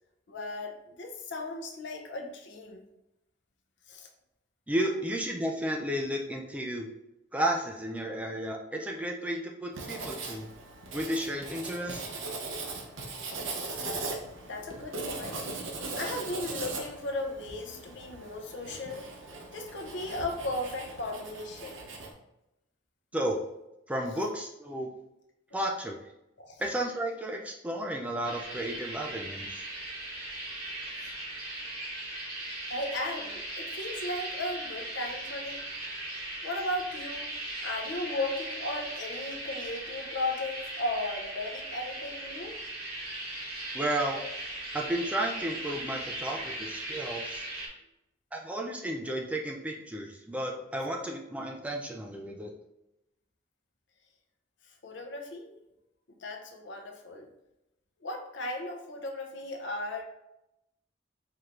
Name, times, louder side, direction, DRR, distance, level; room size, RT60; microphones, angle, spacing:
voice 1, 0.3-2.8 3.9-4.1 13.2-13.6 14.4-15.4 15.9-19.1 19.5-21.9 26.4-26.6 32.7-35.6 36.4-37.3 37.6-42.6 54.8-55.6 56.2-57.3 58.0-60.0, left 2 dB, 65° left, 3 dB, 0.6 m, -36 dB
voice 2, 4.7-6.9 7.3-10.5 10.9-12.0 23.1-23.4 23.9-24.9 25.5-26.0 26.6-29.5 43.7-44.2 44.7-47.5 48.3-52.5, right 1 dB, 5° right, 0 dB, 0.3 m, -33 dB
Writing, 9.7-22.1, right 3 dB, 85° right, 0.7 m, -39 dB
sound 1, 28.2-47.7, right 1 dB, 50° right, 1.1 m, -38 dB
4.5 x 3.2 x 2.5 m, 0.89 s
head